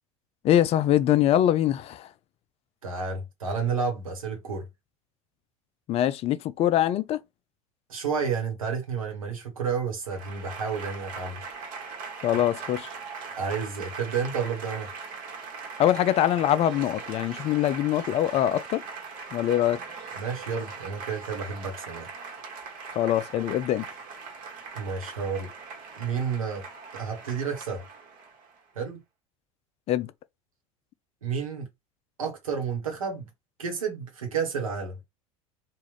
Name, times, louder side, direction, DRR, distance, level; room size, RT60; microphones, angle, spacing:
voice 1, 0.4-2.1 5.9-7.2 12.2-12.9 15.8-18.8 19.3-19.8 22.9-23.9 29.9-30.1, left 12 dB, 35° left, 0.3 m, -23 dB
voice 2, 2.8-4.7 7.9-11.4 13.4-14.9 20.1-22.1 24.7-25.5 26.0-26.6 26.9-27.8 28.7-29.0 31.2-31.7 32.2-33.3 33.6-35.0, right 6 dB, 80° right, 1.2 m, -31 dB
Applause / Crowd, 10.0-28.6, right 5 dB, 50° right, 1.2 m, -40 dB
3.5 x 2.5 x 3.2 m
figure-of-eight pair, 75°, 17 cm